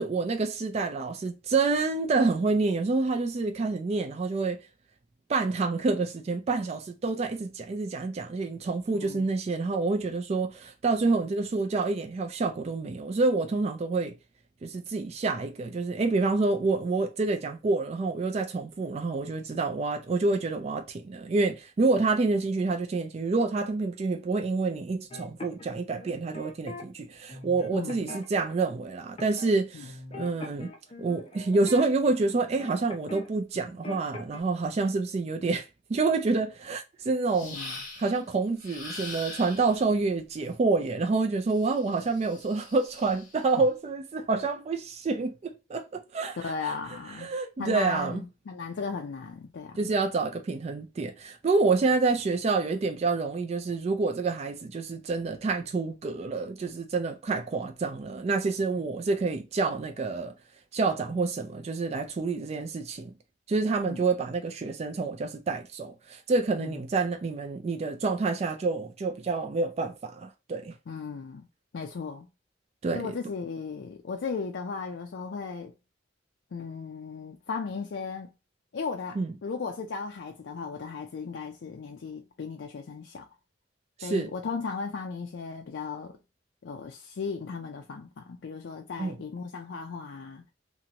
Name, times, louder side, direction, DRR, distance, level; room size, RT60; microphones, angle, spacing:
voice 1, 0.0-4.6 5.3-14.1 14.6-30.7 31.0-37.6 38.0-46.7 47.2-48.2 49.8-60.3 60.7-63.1 63.5-70.7 72.8-73.1 79.2-79.3 84.0-84.3 89.0-89.2, right 3 dB, 35° right, 0.3 m, -28 dB
sound 1, 25.1-26.8 27.3-28.5 29.2-29.5 29.8-33.3 33.5-34.4, left 1 dB, 30° left, 0.6 m, -42 dB
voice 2, 27.7-28.1 29.7-29.9 37.4-37.8 46.4-47.3 47.6-49.9 63.9-64.0 66.6-66.7 70.9-71.5 71.7-72.3 72.9-75.7 76.5-78.3 78.7-83.2 84.0-86.1 86.6-90.4, left 5 dB, 70° left, 0.4 m, -36 dB
sound 2, 37.3-38.2 38.6-39.8 41.5-43.4, left 3 dB, 50° left, 1.3 m, -42 dB
2.8 x 2.5 x 2.8 m
head